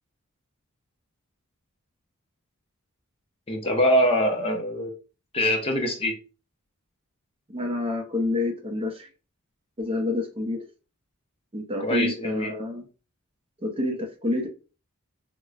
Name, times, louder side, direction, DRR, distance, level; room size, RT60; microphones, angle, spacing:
voice 1, 3.5-4.9 5.3-6.1 11.8-12.5, equal, 25° left, 0.6 m, -23 dB
voice 2, 7.5-9.1 9.8-10.6 11.5-12.8 13.6-14.5, left 2 dB, 25° right, 0.6 m, -28 dB
4.7 x 2.1 x 2.3 m
head